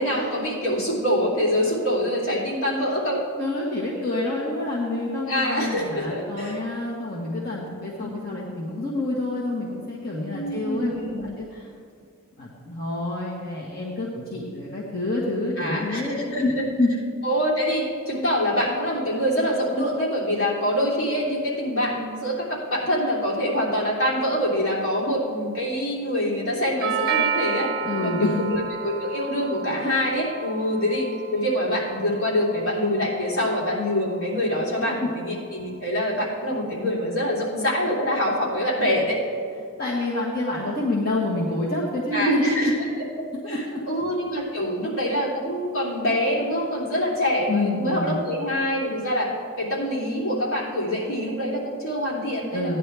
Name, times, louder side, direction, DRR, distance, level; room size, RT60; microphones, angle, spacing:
voice 1, 0.0-3.2 5.2-6.6 8.0-8.1 10.3-11.3 15.6-16.0 16.3-16.6 17.2-27.7 28.0-39.2 42.1-42.9 43.5-49.3 49.6-52.8, equal, 70° left, -5 dB, 3.4 m, -25 dB
voice 2, 3.4-11.7 12.4-16.5 16.8-16.9 27.8-28.4 39.8-42.7 43.4-43.8 47.5-48.2 52.5-52.8, left 2 dB, 45° left, -5 dB, 1.4 m, -27 dB
Doorbell, 26.8-34.9, right 6 dB, 45° right, 0.6 m, -32 dB
16.5 x 10.5 x 3.4 m, 2.3 s
head